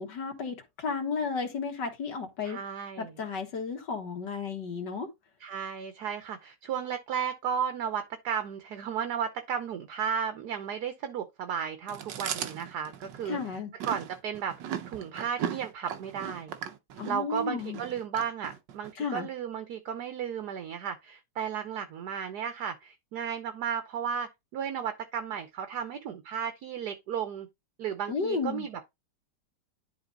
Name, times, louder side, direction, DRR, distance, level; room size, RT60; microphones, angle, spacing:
voice 1, 0.0-2.6 3.0-5.1 13.3-13.7 17.0-17.8 19.0-19.3 28.1-28.7, left 5 dB, 75° left, 2.2 m, -33 dB
voice 2, 2.4-3.2 5.4-14.6 14.9-16.6 17.1-27.5 27.8-28.9, right 8 dB, 70° right, 1.4 m, -34 dB
Chewing mastication, 11.9-18.9, right 9 dB, 85° right, 1.6 m, -38 dB
10.5 x 3.8 x 3.9 m
omnidirectional pair, 1.9 m